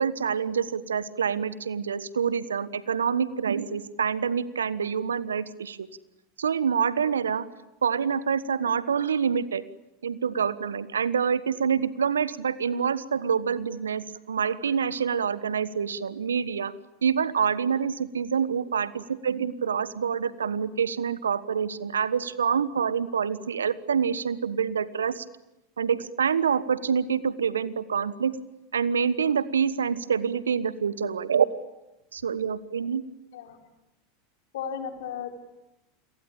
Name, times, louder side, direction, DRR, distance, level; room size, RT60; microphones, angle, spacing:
voice 1, 0.0-5.9 6.4-7.4 7.8-9.6 10.0-16.7 17.0-25.2 25.8-28.4 28.7-31.5 32.1-33.0, right 7 dB, 80° right, 16 dB, 1.3 m, -26 dB
voice 2, 34.5-35.4, left 7 dB, 65° left, 5 dB, 4.4 m, -34 dB
29.5 x 22.5 x 8.8 m, 0.94 s
figure-of-eight pair, 85°, 0 cm